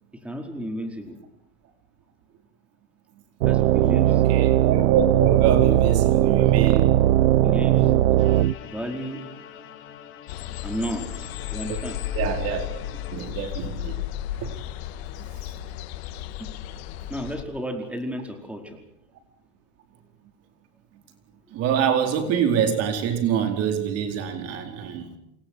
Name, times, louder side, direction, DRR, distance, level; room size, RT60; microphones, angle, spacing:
voice 1, 0.1-1.2 3.4-4.2 7.3-7.9 8.6-9.2 10.6-12.0 16.4-16.5 17.1-18.8, equal, 5° right, 4 dB, 4.8 m, -33 dB
sound 1, 3.4-8.5, right 14 dB, 70° right, 1.0 m, -18 dB
voice 2, 4.0-7.0 11.7-11.8 12.1-12.7 13.1-14.0 14.4-14.6 21.5-25.1, right 8 dB, 45° right, 6 dB, 4.6 m, -25 dB
sound 2, 8.2-13.1, left 9 dB, 35° left, 4.9 m, -44 dB
sound 3, 10.3-17.4, left 11 dB, 65° left, 2.4 m, -34 dB
28.0 x 27.5 x 4.8 m, 0.75 s
supercardioid pair, 135°, 34 cm